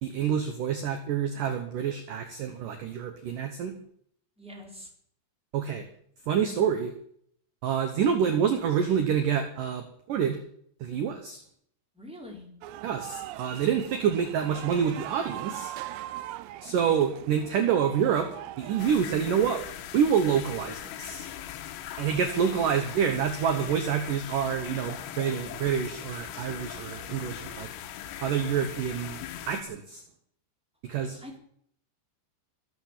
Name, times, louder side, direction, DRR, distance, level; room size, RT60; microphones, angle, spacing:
voice 1, 0.0-3.7 5.5-5.9 6.3-6.9 7.6-10.4 10.8-11.4 12.8-15.7 16.6-18.3 18.6-19.6 19.9-21.3 22.0-27.7 28.2-30.0 30.8-31.2, right 8 dB, 65° right, 7 dB, 2.4 m, -27 dB
voice 2, 4.4-4.9 11.9-12.5 31.0-31.4, left 1 dB, ahead, 0 dB, 3.8 m, -44 dB
sound 1, 12.6-19.0, right 15 dB, 80° right, 2.9 m, -41 dB
sound 2, 18.8-29.6, left 11 dB, 80° left, 3.2 m, -40 dB
23.5 x 8.2 x 7.5 m, 0.65 s
omnidirectional pair, 5.0 m